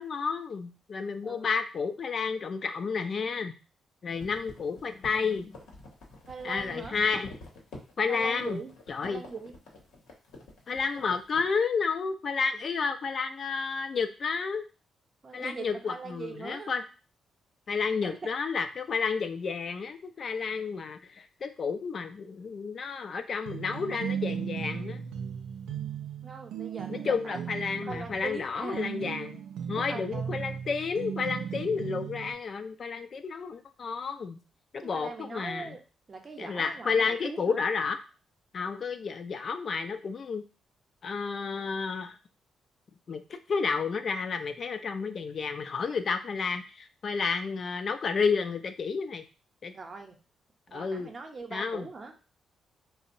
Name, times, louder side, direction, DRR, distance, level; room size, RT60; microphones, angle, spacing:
voice 1, 0.0-3.5 4.0-5.6 6.4-7.3 8.0-8.6 8.9-9.2 10.7-14.6 15.3-16.8 17.7-25.0 26.9-29.4 29.7-34.4 34.7-35.8 36.4-38.0 38.5-40.4 41.0-42.2 43.1-49.2 49.6-49.7 50.7-51.1 51.5-51.9, left 5 dB, 55° left, 8 dB, 0.3 m, -31 dB
sound 1, 4.1-11.5, left 2 dB, 85° left, 0.8 m, -48 dB
voice 2, 6.3-7.0 8.1-8.7 9.0-9.5 15.2-16.7 18.0-18.3 26.2-27.5 27.8-28.9 29.9-30.4 34.8-35.8 36.1-37.6 49.7-50.2 50.7-52.2, right 4 dB, 45° right, 4 dB, 0.6 m, -41 dB
sound 2, 23.5-32.3, right 8 dB, 85° right, 0.3 m, -37 dB
2.7 x 2.0 x 2.5 m, 0.33 s
supercardioid pair, 55°, 0 cm